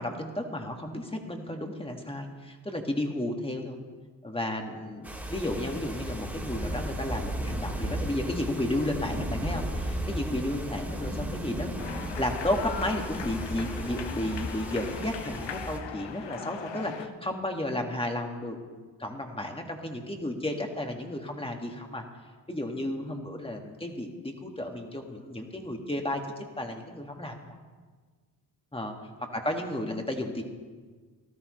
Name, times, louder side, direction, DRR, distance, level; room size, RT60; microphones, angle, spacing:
voice 1, 0.0-3.8 4.2-22.0 22.5-26.2 26.6-27.5 28.7-28.9 29.3-30.4, left 1 dB, 10° left, 2 dB, 2.0 m, -33 dB
sound 1, 5.0-15.8, equal, 5° right, 2.6 m, -35 dB
sound 2, 11.8-17.1, left 7 dB, 75° left, 0.9 m, -40 dB
17.5 x 13.0 x 3.2 m, 1.5 s
cardioid pair, 55°, 43 cm